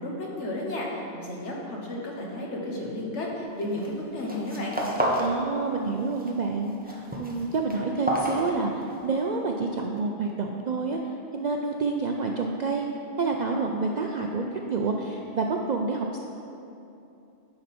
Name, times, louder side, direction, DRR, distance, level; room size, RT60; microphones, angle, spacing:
voice 1, 0.0-4.8, left 1 dB, 70° left, -2 dB, 1.5 m, -33 dB
sound 1, 3.6-3.9 4.2-5.4 5.7-6.3 6.6-9.1, equal, 10° right, 0.8 m, -30 dB
voice 2, 5.2-8.7 9.0-11.0 11.3-12.9 13.2-16.2, right 4 dB, 60° right, 1 dB, 0.4 m, -28 dB
9.7 x 5.6 x 4.3 m, 2.8 s
omnidirectional pair, 1.2 m